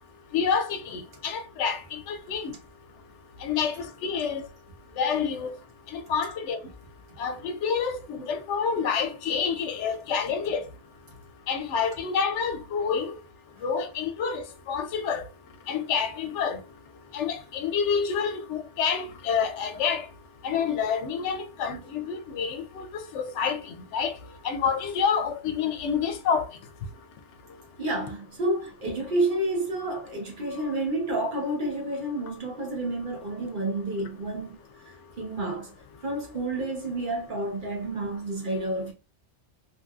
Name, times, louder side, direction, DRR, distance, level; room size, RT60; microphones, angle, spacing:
voice 1, 0.3-2.5 3.4-4.5 5.0-5.6 5.9-6.6 7.2-10.7 11.5-13.2 13.6-15.2 15.7-16.6 17.1-20.1 20.4-22.8 23.1-24.1 24.4-26.5, left 6 dB, 85° left, 0.9 m, -28 dB
voice 2, 27.8-34.6 35.2-35.7 36.0-38.9, right 1 dB, 45° right, 1.1 m, -29 dB
2.9 x 2.5 x 2.3 m
omnidirectional pair, 1.2 m